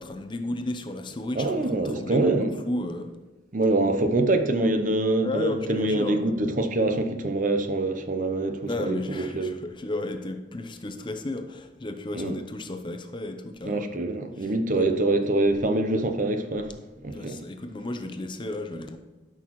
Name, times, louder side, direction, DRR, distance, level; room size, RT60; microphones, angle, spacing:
voice 1, 0.0-3.1 5.2-6.3 8.7-14.1 14.4-14.9 17.1-19.0, left 2 dB, 25° left, 0.6 m, -33 dB
voice 2, 1.3-2.6 3.5-9.6 12.1-12.4 13.6-16.7 17.0-17.4, right 2 dB, 45° right, 0.7 m, -25 dB
12.0 x 6.1 x 3.1 m
head